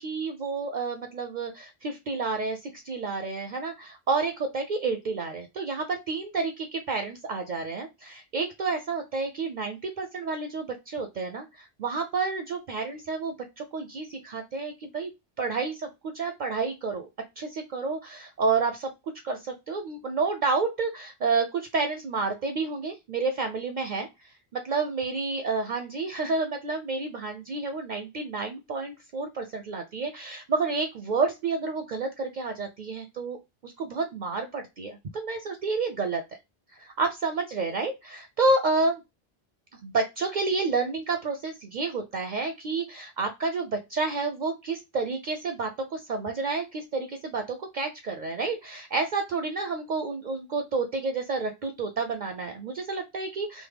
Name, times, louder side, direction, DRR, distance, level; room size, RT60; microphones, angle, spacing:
voice 1, 0.0-15.1 15.4-15.9 16.1-17.1 17.4-18.9 19.2-24.1 24.5-33.4 33.6-36.2 37.0-39.0 39.8-53.7, right 4 dB, 55° right, 6 dB, 0.6 m, -30 dB
3.3 x 2.0 x 3.3 m, 0.23 s
omnidirectional pair, 1.0 m